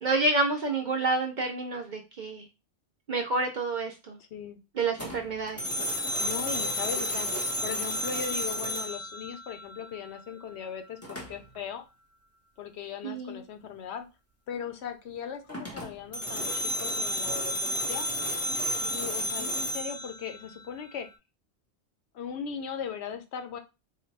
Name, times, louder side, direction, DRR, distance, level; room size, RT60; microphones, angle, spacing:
voice 1, 0.0-2.5 3.1-4.2 4.8-5.6 13.0-13.4, right 3 dB, 55° right, 2 dB, 0.5 m, -28 dB
voice 2, 4.2-4.6 6.2-7.3 7.6-11.8 12.6-14.1 14.5-18.1 18.8-21.1 22.1-23.6, left 7 dB, 70° left, 8 dB, 0.8 m, -38 dB
sound 1, 5.0-10.0 11.0-11.6 15.5-21.0, equal, 15° left, 0.8 m, -32 dB
3.9 x 2.2 x 3.2 m, 0.27 s
omnidirectional pair, 1.2 m